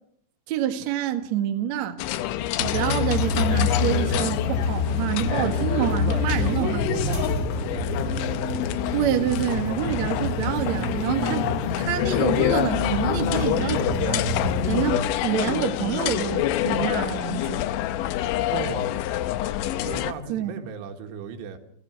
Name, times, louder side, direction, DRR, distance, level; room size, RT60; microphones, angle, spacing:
voice 1, 0.5-2.0 2.6-6.9 8.9-11.5 11.7-14.3 14.7-17.7 20.3-20.6, right 11 dB, 60° right, 1.9 m, -27 dB
sound 1, 2.0-20.1, left 13 dB, 85° left, 3.3 m, -27 dB
sound 2, 2.6-15.0, left 3 dB, 25° left, 6.0 m, -27 dB
voice 2, 2.7-3.1 5.2-8.3 18.5-18.9 19.8-21.6, right 6 dB, 90° right, 4.2 m, -35 dB
29.5 x 15.0 x 6.3 m
omnidirectional pair, 5.3 m